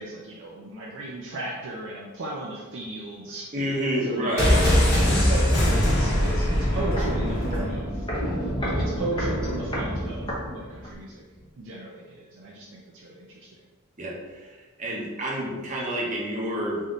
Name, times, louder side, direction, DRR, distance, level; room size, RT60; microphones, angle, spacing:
voice 1, 0.0-3.5 4.0-4.7 5.1-8.1 8.6-11.2 11.6-13.5, right 2 dB, 55° right, -4 dB, 0.5 m, -35 dB
voice 2, 3.5-4.6 14.0-16.8, equal, 35° right, -4 dB, 0.9 m, -29 dB
sound 1, 4.4-8.2 8.4-8.5, equal, 50° left, 1.3 m, -22 dB
Walk footsteps, 6.9-11.1 11.4-11.5, equal, 20° left, 0.8 m, -30 dB
3.5 x 2.7 x 3.7 m, 1.3 s
head